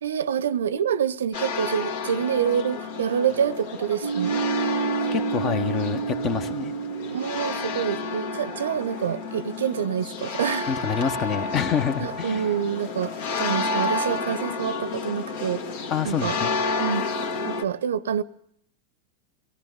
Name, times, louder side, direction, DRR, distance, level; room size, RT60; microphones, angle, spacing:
voice 1, 0.0-4.6 7.1-10.7 12.0-15.6 16.0-16.4 16.8-17.0 17.4-18.2, right 8 dB, 65° right, 0.8 m, -27 dB
sound 1, 1.3-17.6, left 4 dB, 55° left, 2.0 m, -31 dB
sound 2, 4.0-9.5, right 7 dB, 90° left, 4.9 m, -30 dB
voice 2, 5.1-6.7 10.7-12.5 15.9-16.5, left 7 dB, 35° left, 1.4 m, -27 dB
23.5 x 17.0 x 9.5 m
figure-of-eight pair, 90°, 0 cm